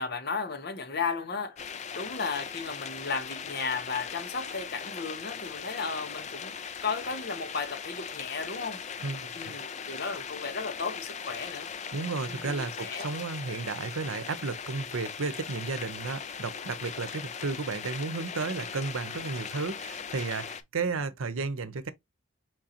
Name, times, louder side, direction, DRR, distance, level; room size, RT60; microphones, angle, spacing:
voice 1, 0.0-1.6 1.9-6.5 6.8-8.8 9.3-11.7 12.3-13.1, left 4 dB, 50° left, 0.9 m, -34 dB
sound 1, 1.6-20.6, left 6 dB, 35° left, 0.5 m, -39 dB
voice 2, 9.0-9.5 11.9-21.9, right 4 dB, 80° right, 0.7 m, -33 dB
4.5 x 3.8 x 2.8 m
head